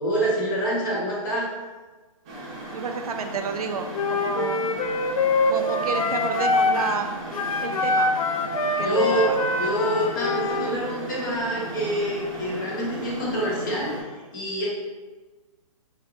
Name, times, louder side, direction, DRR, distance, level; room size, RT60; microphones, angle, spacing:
voice 1, 0.0-1.5 8.8-14.7, right 1 dB, 35° left, -5 dB, 1.1 m, -27 dB
sound 1, 2.2-14.0, right 1 dB, 10° right, 0.4 m, -36 dB
voice 2, 2.7-4.7 5.5-7.1 7.6-8.2 8.8-9.4, right 5 dB, 80° right, 5 dB, 0.5 m, -30 dB
Wind instrument woodwind instrument, 3.9-7.0 7.3-10.7, left 3 dB, 70° left, 0.4 m, -24 dB
3.8 x 3.2 x 3.0 m, 1.3 s
hypercardioid pair, 170°, 19 cm